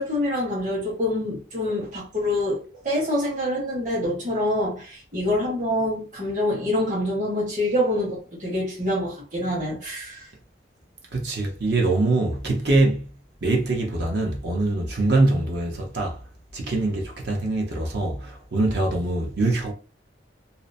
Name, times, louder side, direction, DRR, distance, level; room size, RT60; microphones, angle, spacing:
voice 1, 0.0-10.3, left 1 dB, 45° right, 1.2 m, -26 dB
voice 2, 11.1-13.1 13.4-16.2 16.5-19.7, right 2 dB, 60° right, 0.7 m, -23 dB
2.7 x 2.0 x 2.6 m
head